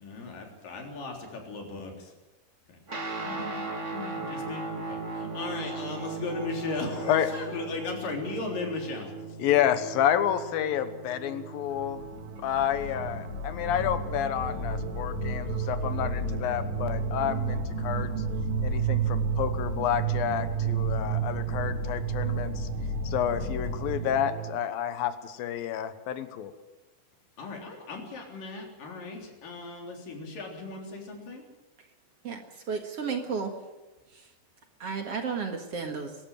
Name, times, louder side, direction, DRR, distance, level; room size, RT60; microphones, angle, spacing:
voice 1, 0.0-2.1 2.7-9.1 27.4-31.4, left 3 dB, 70° left, 1 dB, 5.2 m, -37 dB
Guitar, 2.9-12.5, right 3 dB, 25° right, 2.1 m, -38 dB
voice 2, 9.4-12.1 12.4-18.2 18.6-22.7 23.0-26.5, left 10 dB, 90° left, 10 dB, 3.0 m, -29 dB
sound 1, 11.3-11.5 11.8-24.6, right 13 dB, 80° right, 1.5 m, -32 dB
sound 2, 11.8-24.0, left 5 dB, 55° left, 2.8 m, -36 dB
voice 3, 32.7-33.5 34.1-34.2 34.8-36.2, right 5 dB, 50° right, 4 dB, 2.3 m, -32 dB
23.5 x 12.5 x 9.1 m, 1.1 s
omnidirectional pair, 4.0 m